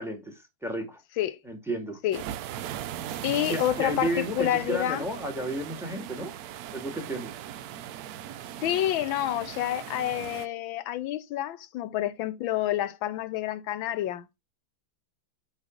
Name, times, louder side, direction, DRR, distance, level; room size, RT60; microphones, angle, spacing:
voice 1, 0.0-1.0 1.4-2.0 3.5-6.3 6.7-7.3, right 1 dB, ahead, 1.5 m, -32 dB
sound 1, 2.1-10.5, right 11 dB, 85° right, 0.8 m, -39 dB
voice 2, 3.2-5.1 8.6-14.4, left 13 dB, 85° left, 1.4 m, -28 dB
8.3 x 3.1 x 5.1 m
omnidirectional pair, 2.1 m